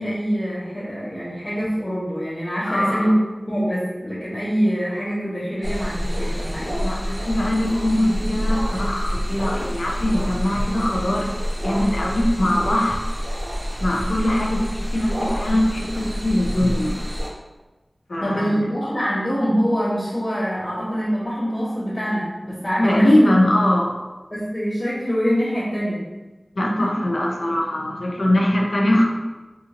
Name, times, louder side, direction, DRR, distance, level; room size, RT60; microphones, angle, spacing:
voice 1, 0.0-3.2 3.5-6.7 7.0-7.3 18.2-23.3 24.3-26.0 26.8-26.9, equal, 40° left, -14 dB, 1.1 m, -24 dB
voice 2, 2.6-3.2 6.8-13.0 13.8-17.1 18.1-18.7 22.8-24.0 26.6-29.0, left 1 dB, 80° left, -1 dB, 0.5 m, -21 dB
sound 1, 5.6-17.3, equal, 45° right, 0.8 m, -27 dB
2.7 x 2.5 x 2.8 m, 1.2 s
wide cardioid pair, 55°, 0 cm